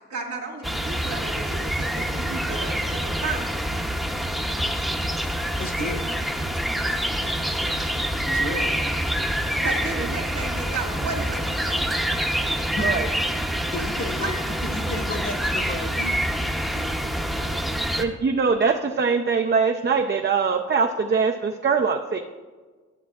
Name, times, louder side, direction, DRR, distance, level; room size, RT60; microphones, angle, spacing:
voice 1, 0.1-3.5 9.6-12.0 13.7-13.8 14.2-15.1 15.4-15.5 16.7-17.0, right 4 dB, 65° right, 0 dB, 1.9 m, -34 dB
sound 1, 0.6-18.0, equal, ahead, 0.7 m, -26 dB
voice 2, 5.6-8.8 9.3-9.4 12.6-12.9 13.6-14.3 14.6-16.3 17.1-17.2, left 2 dB, 45° left, 4 dB, 1.2 m, -35 dB
voice 3, 18.0-22.2, right 5 dB, 35° right, 4 dB, 0.5 m, -22 dB
12.0 x 7.2 x 2.4 m, 1.4 s
cardioid pair, 55°, 31 cm